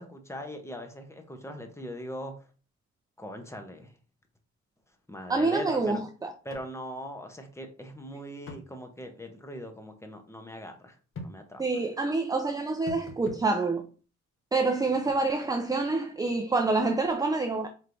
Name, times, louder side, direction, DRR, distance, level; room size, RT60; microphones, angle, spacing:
voice 1, 0.0-2.3 3.2-3.9 5.1-6.0 6.4-11.0 11.2-11.6, equal, 10° left, 0.8 m, -40 dB
voice 2, 5.3-6.3 11.6-13.8 14.5-17.7, right 3 dB, 10° right, 0.4 m, -27 dB
sound 1, 6.5-6.7 7.0-7.1 8.5-8.7 11.1-11.4 12.9-13.4 15.1-15.2, left 2 dB, 45° left, 1.1 m, -41 dB
4.4 x 3.3 x 2.6 m
cardioid pair, 90°, 30 cm